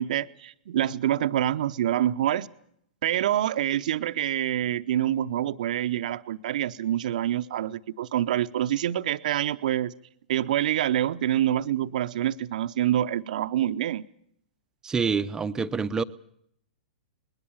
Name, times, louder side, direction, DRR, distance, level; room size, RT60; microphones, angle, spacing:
voice 1, 0.0-2.5 3.0-9.9 10.3-14.0, right 11 dB, 55° right, 12 dB, 0.8 m, -26 dB
voice 2, 14.8-16.0, right 5 dB, 10° right, 11 dB, 0.8 m, -26 dB
21.0 x 20.0 x 7.1 m, 0.71 s
figure-of-eight pair, 110°, 5 cm